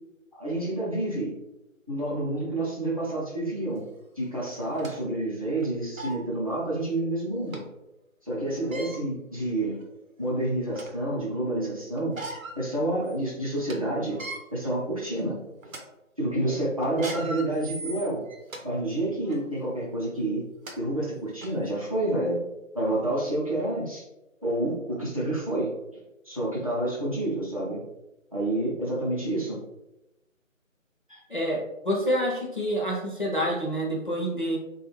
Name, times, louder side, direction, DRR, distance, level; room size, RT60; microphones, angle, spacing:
voice 1, 0.3-1.3 1.9-3.8 4.2-7.6 8.2-9.8 10.2-12.2 12.5-14.2 14.5-15.4 16.2-18.2 18.6-20.4 20.8-22.4 22.7-24.0 24.4-25.7 26.2-27.8 28.3-29.6 31.1-31.2, right 1 dB, 25° right, -7 dB, 0.7 m, -28 dB
sound 1, 3.8-3.9 4.5-5.0 5.6-5.7 6.0-6.2 7.5-7.6 8.6-9.0 9.7-9.8 10.3-11.0 12.0-12.6 13.0-13.1 13.5-13.7 14.1-14.4 15.0-15.2 15.6-15.8 16.8-18.6 19.2-19.4 20.3-20.4 20.7-20.8 21.4-21.5, right 2 dB, 75° right, 0.8 m, -38 dB
voice 2, 31.3-34.6, equal, 40° left, -3 dB, 0.5 m, -27 dB
3.3 x 2.3 x 3.1 m, 0.94 s
figure-of-eight pair, 160°, 41 cm